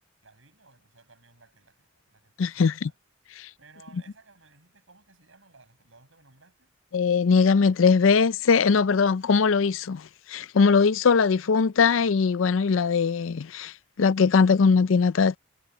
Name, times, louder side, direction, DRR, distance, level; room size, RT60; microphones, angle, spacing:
voice 1, 0.2-3.0 3.3-6.7, right 3 dB, 80° right, 7.8 m, -58 dB
voice 2, 2.4-2.7 3.4-3.5 6.9-13.7 14.0-15.4, left 5 dB, 85° left, 0.5 m, -21 dB
head